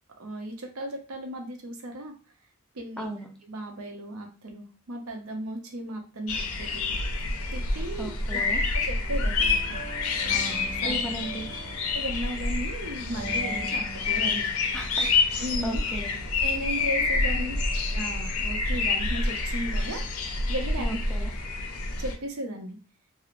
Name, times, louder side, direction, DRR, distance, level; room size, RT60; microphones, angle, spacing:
voice 1, 0.2-2.1 2.7-3.1 3.4-6.9 7.5-8.5 8.7-9.8 10.3-10.9 11.9-14.4 15.4-15.8 16.4-17.6 17.9-21.0 22.0-22.8, right 1 dB, 75° right, 3 dB, 0.6 m, -36 dB
voice 2, 3.0-3.3 8.0-8.6 10.8-11.5 14.7-16.2 20.8-21.3, right 1 dB, 5° left, 0 dB, 0.4 m, -36 dB
sound 1, 6.3-22.2, left 3 dB, 80° left, 0.5 m, -28 dB
sound 2, 9.0-18.4, right 3 dB, 50° right, 1.0 m, -44 dB
2.9 x 2.0 x 2.5 m, 0.35 s
head